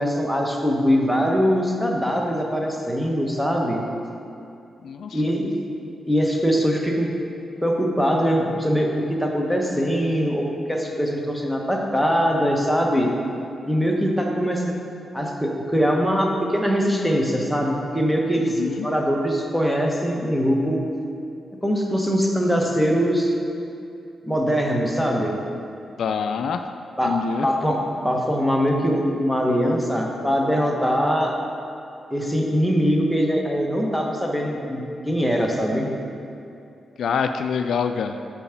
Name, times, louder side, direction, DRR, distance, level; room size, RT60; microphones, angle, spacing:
voice 1, 0.0-3.8 5.1-5.6 6.1-7.1 7.6-13.1 13.6-14.7 15.1-20.8 21.6-23.3 24.3-25.4 27.0-31.3 32.1-35.9, equal, ahead, 0 dB, 1.2 m, -22 dB
voice 2, 4.8-5.2 18.4-18.9 26.0-26.6 27.0-27.5 37.0-38.2, left 6 dB, 75° left, 8 dB, 0.3 m, -25 dB
7.0 x 4.8 x 5.9 m, 2.6 s
cardioid pair, 70°, 0 cm